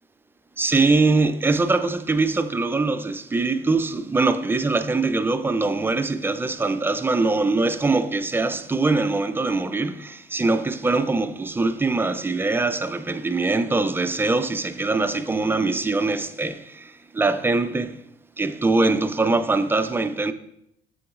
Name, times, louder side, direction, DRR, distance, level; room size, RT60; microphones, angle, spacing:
voice 1, 0.6-18.0 18.4-20.3, right 3 dB, 15° right, 0.3 m, -22 dB
6.9 x 6.6 x 2.4 m
cardioid pair, 110°, 17 cm